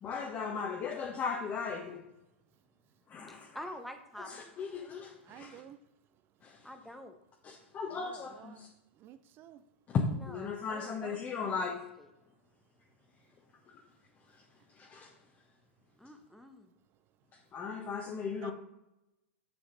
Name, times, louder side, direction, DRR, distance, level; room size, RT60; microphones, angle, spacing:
voice 1, 0.0-2.0 3.1-3.5 4.2-5.6 6.4-6.5 7.4-8.7 9.9-11.8 14.8-15.1 17.5-18.5, left 5 dB, 25° left, 0 dB, 1.1 m, -36 dB
voice 2, 3.3-4.5 6.6-7.2 10.2-12.1 16.0-16.7, equal, ahead, 6 dB, 0.9 m, -48 dB
voice 3, 5.3-5.8 7.9-8.7 9.0-9.6 18.4-18.5, right 11 dB, 35° right, 12 dB, 0.6 m, -51 dB
7.8 x 6.9 x 4.0 m, 0.89 s
figure-of-eight pair, 100°, 7 cm